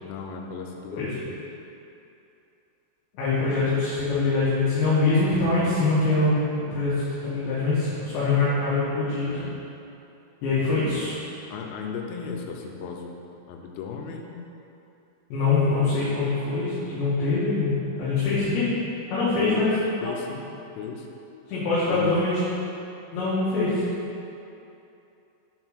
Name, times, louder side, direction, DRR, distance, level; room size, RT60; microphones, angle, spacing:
voice 1, 0.0-1.3 9.3-9.6 10.6-11.2 11.5-13.1 13.5-14.4 19.4-19.7 20.0-21.1 21.9-22.2, left 5 dB, 85° left, 1 dB, 3.3 m, -36 dB
voice 2, 3.1-9.3 10.4-11.1 15.3-17.7 18.0-18.7 19.1-19.8 20.0-20.1 21.5-22.4 23.1-23.8, left 3 dB, 70° left, -11 dB, 3.6 m, -23 dB
7.9 x 4.4 x 6.3 m, 2.8 s
omnidirectional pair, 5.7 m